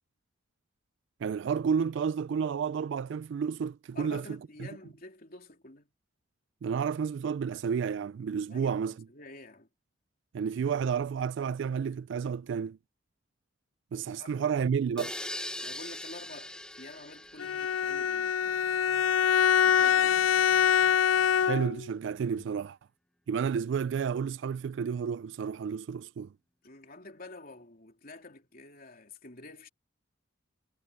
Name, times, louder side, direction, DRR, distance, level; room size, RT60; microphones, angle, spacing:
voice 1, 1.2-4.7 6.6-9.0 10.3-12.8 13.9-15.1 21.4-22.8 23.3-26.3, right 6 dB, 65° right, 0.3 m, -31 dB
voice 2, 3.9-5.9 8.5-9.7 14.2-14.5 15.6-18.7 19.5-20.3 26.6-29.7, left 2 dB, 50° left, 3.3 m, -49 dB
sound 1, 15.0-18.7, left 1 dB, 5° left, 0.6 m, -41 dB
Bowed string instrument, 17.4-21.9, left 8 dB, 90° left, 0.4 m, -24 dB
head